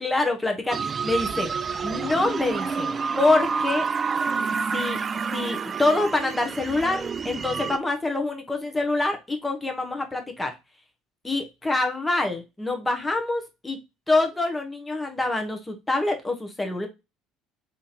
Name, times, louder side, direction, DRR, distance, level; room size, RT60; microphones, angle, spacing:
voice 1, 0.0-1.5 1.8-3.8 4.7-5.0 5.3-10.5 11.2-13.8 14.1-16.9, left 2 dB, 15° left, 3 dB, 1.0 m, -26 dB
sound 1, 0.7-7.8, right 5 dB, 35° right, 0.3 m, -28 dB
3.7 x 2.9 x 4.0 m, 0.24 s
hypercardioid pair, 60°, 0 cm